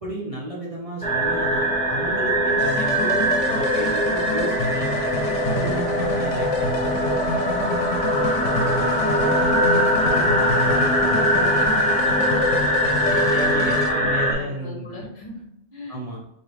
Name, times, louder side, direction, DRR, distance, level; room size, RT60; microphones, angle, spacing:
voice 1, 0.0-6.8 10.2-10.4 13.0-15.0 15.9-16.2, equal, 35° right, -6 dB, 0.8 m, -33 dB
sound 1, 1.0-14.3, equal, 10° left, 0.5 m, -21 dB
sound 2, 2.6-13.9, left 3 dB, 85° left, 1.0 m, -28 dB
voice 2, 8.8-12.6 13.0-16.0, equal, 45° left, -4 dB, 1.5 m, -37 dB
4.1 x 2.9 x 3.2 m, 0.77 s
omnidirectional pair, 1.2 m